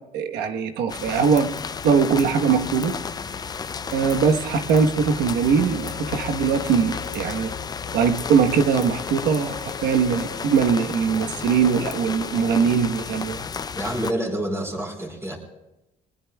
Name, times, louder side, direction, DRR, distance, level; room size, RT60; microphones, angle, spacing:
voice 1, 0.1-1.5 1.8-2.9 3.9-7.5 7.9-13.5, right 6 dB, 80° right, 6 dB, 1.2 m, -21 dB
sound 1, 0.9-14.1, left 6 dB, 25° left, 0.4 m, -33 dB
sound 2, 3.1-12.6, left 8 dB, 90° left, 3.0 m, -42 dB
voice 2, 13.7-15.4, right 1 dB, 15° right, 0 dB, 4.5 m, -28 dB
22.5 x 19.5 x 2.3 m, 0.97 s
cardioid pair, 110°, 17 cm